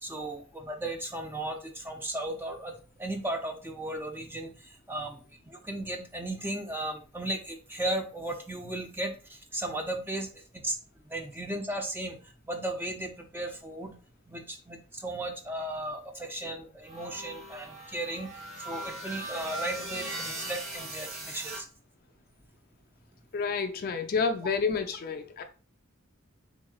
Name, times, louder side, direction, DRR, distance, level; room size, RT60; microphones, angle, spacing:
voice 1, 0.0-2.7 3.0-4.5 4.9-5.2 5.5-9.1 9.5-10.3 10.5-10.7 11.1-12.2 12.5-13.9 14.3-18.3 18.6-21.6, right 1 dB, 10° right, 0.5 m, -35 dB
sound 1, 16.8-21.6, right 2 dB, 85° right, 1.6 m, -39 dB
voice 2, 23.3-25.4, left 5 dB, 45° left, 0.4 m, -29 dB
3.5 x 3.0 x 2.4 m
head